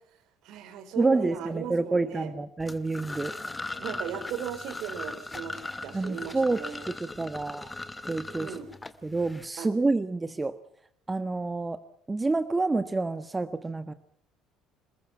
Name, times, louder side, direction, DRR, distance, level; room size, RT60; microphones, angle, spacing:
voice 1, 0.4-2.3 3.8-6.9 8.4-8.7 9.6-9.7, right 9 dB, 55° right, 10 dB, 4.1 m, -37 dB
voice 2, 1.0-3.3 5.9-7.7 8.0-8.5 9.0-10.5 11.1-11.8 12.1-13.9, right 3 dB, 15° right, 11 dB, 1.5 m, -28 dB
sound 1, 2.6-9.5, left 2 dB, 15° left, 2.0 m, -39 dB
28.0 x 21.5 x 5.7 m, 0.69 s
figure-of-eight pair, 55°, 0 cm